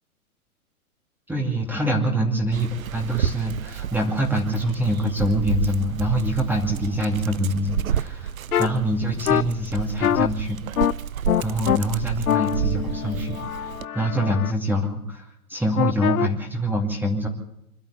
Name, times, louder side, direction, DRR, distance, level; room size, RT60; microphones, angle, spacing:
voice 1, 1.3-8.3 8.6-10.6 11.4-17.3, right 1 dB, 5° right, 0 dB, 2.6 m, -25 dB
Dog, 2.5-13.9, right 9 dB, 70° right, 0.9 m, -31 dB
sound 1, 8.5-8.7 9.3-9.4 10.0-10.3 10.8-10.9 11.3-11.8 12.3-14.5 15.8-16.3, left 10 dB, 75° left, 0.8 m, -23 dB
26.0 x 12.5 x 8.2 m, 0.80 s
figure-of-eight pair, 115°, 43 cm